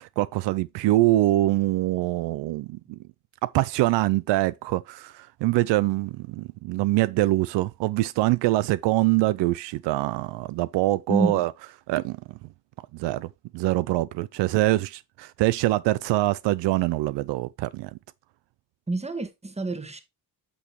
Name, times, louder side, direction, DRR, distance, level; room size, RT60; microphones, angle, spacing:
voice 1, 0.0-3.0 3.4-11.5 11.9-12.2 12.9-17.9, right 17 dB, 75° right, 0.5 m, -24 dB
voice 2, 11.1-11.4 18.9-20.0, right 2 dB, 15° right, 1.5 m, -27 dB
8.7 x 6.2 x 3.1 m
cardioid pair, 85°, 42 cm